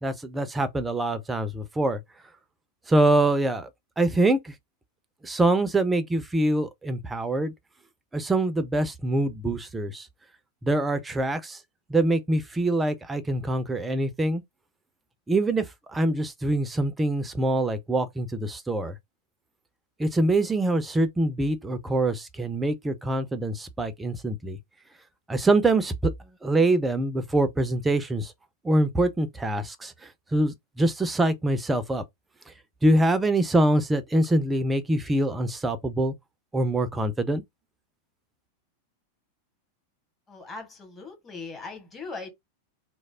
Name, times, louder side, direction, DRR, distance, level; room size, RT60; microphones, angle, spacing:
voice 1, 0.0-2.0 2.9-3.7 4.0-4.5 5.2-7.5 8.1-10.1 10.6-11.6 11.9-14.4 15.3-15.7 15.9-18.9 20.0-24.6 25.3-26.1 26.4-28.3 28.6-32.0 32.8-36.1 36.5-37.4, right 2 dB, 10° right, 0.6 m, -24 dB
voice 2, 40.3-42.3, left 4 dB, 20° left, 1.4 m, -39 dB
3.2 x 2.1 x 3.6 m
figure-of-eight pair, 90°, 0 cm